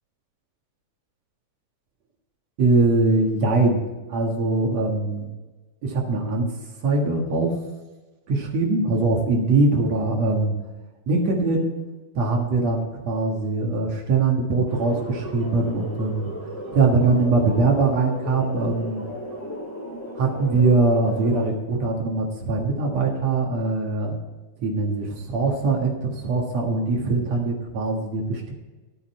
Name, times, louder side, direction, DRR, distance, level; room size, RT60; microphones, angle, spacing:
voice 1, 2.6-3.8 4.1-5.3 5.8-6.5 6.8-7.5 8.3-10.6 11.1-11.7 12.2-16.3 16.7-19.0 20.2-24.2 24.6-28.5, right 3 dB, 55° right, 0 dB, 2.3 m, -22 dB
sound 1, 14.7-21.5, equal, 5° left, 1.3 m, -35 dB
13.0 x 8.8 x 4.3 m, 1.2 s
omnidirectional pair, 4.6 m